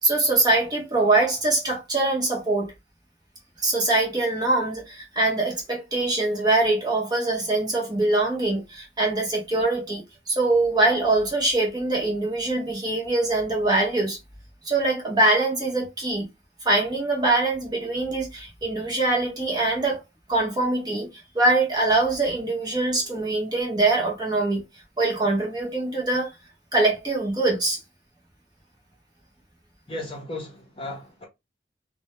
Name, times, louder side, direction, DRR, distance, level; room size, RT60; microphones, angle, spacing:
voice 1, 0.0-2.7 3.6-14.2 14.6-16.3 16.6-20.0 20.3-21.1 21.3-24.6 25.0-26.3 26.7-27.8, right 2 dB, 20° right, 0.7 m, -23 dB
voice 2, 29.9-31.2, left 2 dB, 30° left, 0.8 m, -35 dB
2.2 x 2.2 x 2.9 m
head